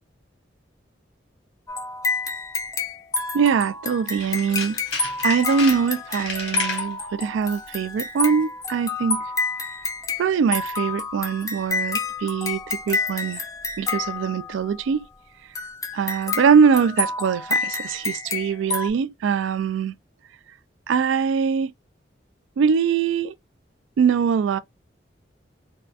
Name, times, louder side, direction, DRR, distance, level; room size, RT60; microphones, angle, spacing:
sound 1, 1.7-14.8 15.6-18.9, left 4 dB, 20° left, 0.4 m, -29 dB
voice 1, 3.3-4.8 5.2-9.3 10.2-13.4 13.8-15.1 15.9-19.9 20.9-21.7 22.6-23.3 24.0-24.6, right 6 dB, 90° right, 0.3 m, -22 dB
Tools, 4.1-6.9 7.4-7.7 8.0-8.1, left 4 dB, 75° left, 1.4 m, -33 dB
3.7 x 2.3 x 2.3 m
head